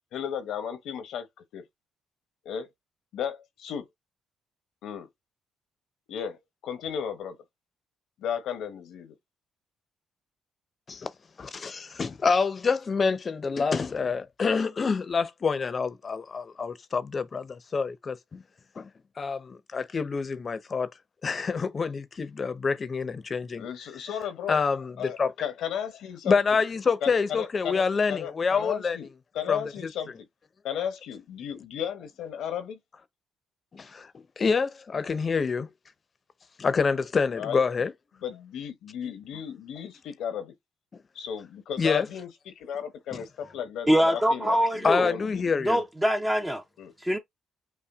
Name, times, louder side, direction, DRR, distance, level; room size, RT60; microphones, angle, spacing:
voice 1, 0.1-1.3 1.5-1.6 2.4-2.7 3.1-3.9 4.8-5.1 6.1-6.4 6.6-7.4 8.2-9.1 23.6-24.6 25.0-26.6 27.0-29.1 29.3-30.1 30.6-32.8 37.3-37.6 38.2-40.5 41.1-45.5 46.8-46.9, left 8 dB, 80° left, 1.0 m, -34 dB
voice 2, 11.4-18.4 18.8-18.9 19.2-20.9 21.2-23.6 24.5-25.3 26.2-29.0 29.5-29.9 33.7-35.7 36.6-37.9 39.0-39.1 40.9-41.0 41.8-42.1 44.8-45.8, left 5 dB, 40° left, 0.7 m, -27 dB
voice 3, 43.9-45.1 45.7-46.6 47.0-47.2, equal, 10° right, 0.7 m, -23 dB
5.7 x 2.3 x 3.5 m
cardioid pair, 90°, 0 cm